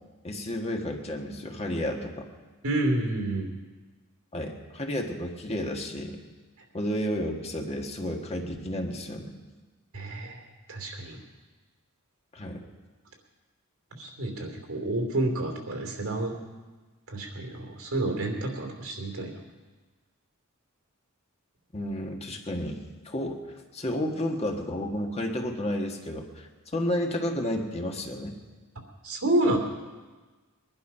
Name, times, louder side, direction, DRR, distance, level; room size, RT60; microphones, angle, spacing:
voice 1, 0.2-2.3 4.3-6.2 6.7-9.4 12.3-12.6 21.7-23.4 23.7-28.4, left 1 dB, 30° left, 2 dB, 1.6 m, -31 dB
voice 2, 2.6-3.5 9.9-10.4 10.7-11.2 14.0-16.4 17.1-19.4 29.0-29.6, right 1 dB, 70° right, 3 dB, 2.9 m, -29 dB
21.5 x 11.5 x 5.6 m, 1.3 s
head